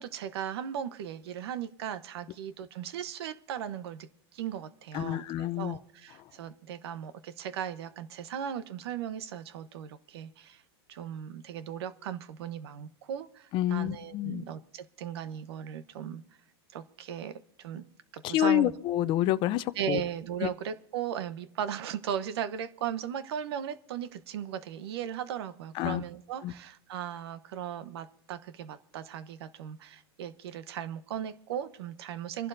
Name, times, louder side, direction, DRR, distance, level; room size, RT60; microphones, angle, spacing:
voice 1, 0.0-10.6 10.9-16.2 16.7-17.3 17.6-18.7 19.8-32.5, right 9 dB, 70° right, 14 dB, 1.0 m, -37 dB
voice 2, 4.9-5.8 13.5-14.4 18.2-20.0 20.4-20.5 25.7-26.0 26.4-26.5, left 13 dB, 35° left, 14 dB, 0.6 m, -28 dB
26.0 x 11.5 x 2.6 m, 0.73 s
supercardioid pair, 140°, 14 cm